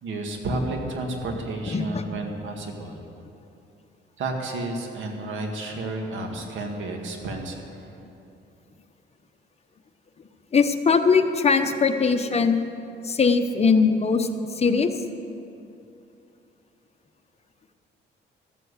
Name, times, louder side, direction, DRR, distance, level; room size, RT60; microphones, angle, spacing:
voice 1, 0.0-3.0 4.2-7.6, right 2 dB, 75° right, 2 dB, 2.0 m, -31 dB
voice 2, 1.7-2.0 10.5-12.6 13.1-14.3 14.6-14.9, left 5 dB, 30° left, 6 dB, 0.9 m, -20 dB
14.0 x 7.6 x 8.3 m, 2.7 s
cardioid pair, 90°, 20 cm